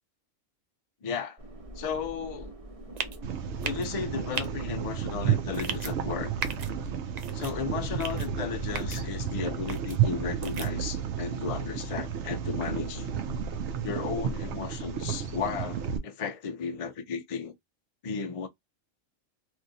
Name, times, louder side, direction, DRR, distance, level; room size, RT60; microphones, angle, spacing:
voice 1, 1.0-1.4 1.8-2.5 3.6-6.3 7.3-13.1 13.8-17.5 18.0-18.5, left 6 dB, 60° left, 0.3 m, -34 dB
sound 1, 1.4-15.9, equal, 30° right, 0.8 m, -45 dB
sound 2, 3.0-3.2 3.6-3.9 4.3-4.5 5.5-5.9 6.4-6.7 7.2-7.5 8.0-8.3 8.7-9.0 9.7-10.0 10.4-10.7, right 6 dB, 85° right, 0.3 m, -35 dB
sound 3, 3.2-16.0, right 8 dB, 65° right, 0.8 m, -32 dB
3.0 x 2.6 x 2.6 m
omnidirectional pair, 1.4 m